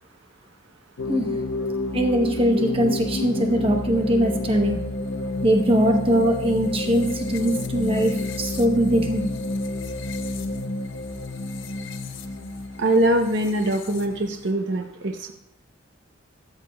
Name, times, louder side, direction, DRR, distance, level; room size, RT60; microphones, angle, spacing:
sound 1, 1.0-14.5, left 2 dB, 60° left, 0.6 m, -30 dB
voice 1, 1.1-1.4 1.9-4.8 5.4-9.2, right 1 dB, 25° right, 3 dB, 0.9 m, -21 dB
voice 2, 12.8-15.3, right 1 dB, 60° right, 3 dB, 0.8 m, -22 dB
13.5 x 7.3 x 2.3 m, 0.85 s
head